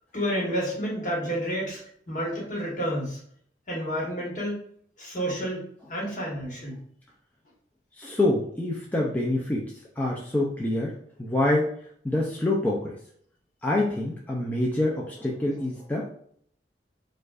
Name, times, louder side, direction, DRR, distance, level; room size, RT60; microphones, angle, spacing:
voice 1, 0.1-1.8 2.1-3.2 3.7-4.6 5.0-6.8, equal, 45° left, -3 dB, 1.2 m, -30 dB
voice 2, 8.0-11.7 12.0-12.9 13.6-16.1, left 1 dB, 10° left, -3 dB, 0.4 m, -26 dB
4.6 x 2.4 x 2.4 m, 0.63 s
head